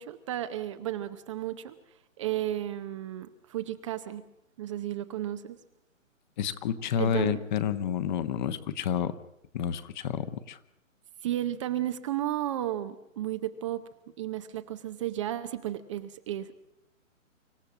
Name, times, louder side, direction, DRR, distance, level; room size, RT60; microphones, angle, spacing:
voice 1, 0.0-1.8 2.2-4.2 4.6-5.6 7.0-7.5 11.2-13.8 14.2-16.5, right 13 dB, 25° right, 10 dB, 0.7 m, -33 dB
voice 2, 6.4-9.1 9.5-10.6, left 9 dB, 35° left, 12 dB, 1.2 m, -29 dB
26.0 x 15.0 x 7.3 m, 0.82 s
hypercardioid pair, 140°, 40 cm